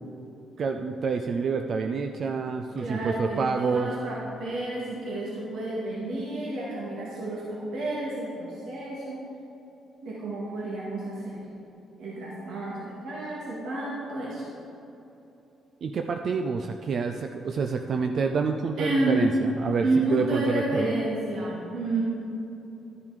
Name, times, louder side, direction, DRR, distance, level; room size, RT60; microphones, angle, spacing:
voice 1, 0.6-3.9 15.8-20.9, right 5 dB, 55° right, 5 dB, 0.5 m, -28 dB
voice 2, 2.8-9.2 10.0-11.4 12.0-14.5 18.8-19.3 19.8-22.0, right 2 dB, 75° right, -6 dB, 2.1 m, -30 dB
12.0 x 6.9 x 5.0 m, 2.9 s
cardioid pair, 90°, 0 cm